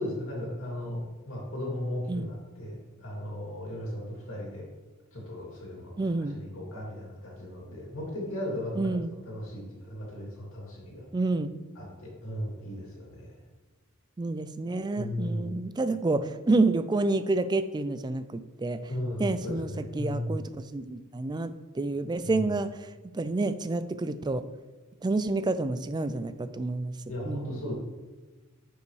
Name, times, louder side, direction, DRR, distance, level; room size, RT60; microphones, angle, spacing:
voice 1, 0.0-4.7 5.1-8.9 9.3-11.0 11.8-13.3 14.9-15.6 18.9-20.4 22.2-22.4 27.1-27.7, left 1 dB, 65° left, -3 dB, 2.4 m, -36 dB
voice 2, 6.0-6.4 8.8-9.2 11.1-11.5 14.2-18.8 19.2-24.4 25.0-26.9 27.3-27.6, right 2 dB, 20° right, 11 dB, 0.3 m, -29 dB
10.0 x 5.3 x 3.2 m, 1.2 s
head